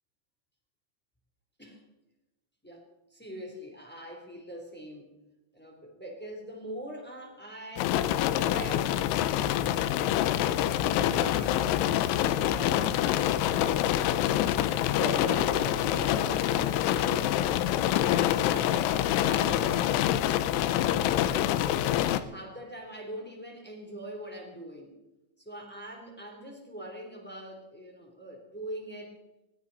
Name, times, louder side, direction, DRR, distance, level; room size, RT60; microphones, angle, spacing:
voice 1, 3.1-5.1 5.5-11.7 12.4-12.9 14.7-17.3 18.0-19.9 20.6-24.9 25.4-29.1, right 1 dB, 5° left, 0 dB, 1.9 m, -42 dB
sound 1, 7.8-22.2, left 12 dB, 85° left, 3.2 m, -26 dB
19.5 x 16.5 x 4.1 m, 0.99 s
omnidirectional pair, 5.5 m